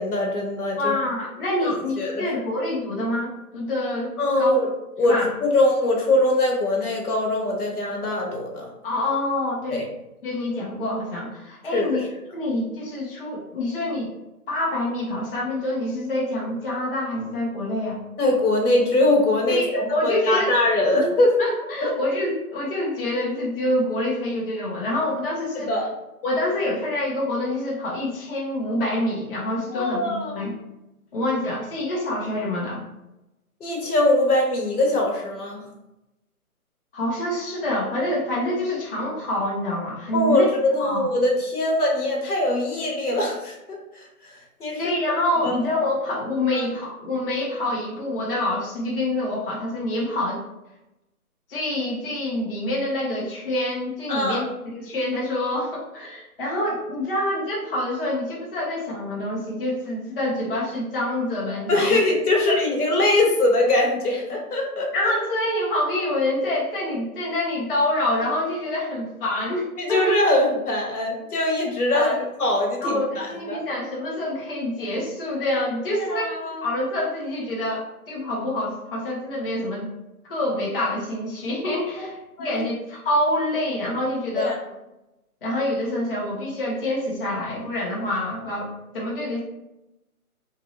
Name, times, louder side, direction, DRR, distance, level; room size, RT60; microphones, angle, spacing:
voice 1, 0.0-1.0 1.6-2.2 4.2-4.6 5.0-8.7 9.7-9.8 11.7-12.0 18.2-21.3 21.8-21.9 25.5-25.9 29.7-30.4 33.6-35.6 40.1-44.9 45.4-45.6 46.5-46.7 54.1-54.4 61.7-64.9 69.8-73.6 75.9-76.6 82.4-82.6 84.4-84.5, left 1 dB, 75° left, 0 dB, 1.1 m, -22 dB
voice 2, 0.8-4.5 5.0-5.3 8.8-9.9 10.2-12.0 12.3-14.1 14.5-18.0 19.5-20.5 20.9-21.0 21.4-25.7 26.2-30.5 31.1-32.8 36.9-40.5 40.8-41.1 44.8-50.4 51.5-54.5 54.7-62.0 62.5-62.6 64.9-70.1 71.9-72.2 72.8-76.3 76.6-79.9 80.2-82.2 82.4-84.5 85.4-89.4, left 1 dB, 40° left, -4 dB, 0.7 m, -26 dB
3.0 x 2.6 x 2.6 m, 0.93 s
hypercardioid pair, 160°, 45 cm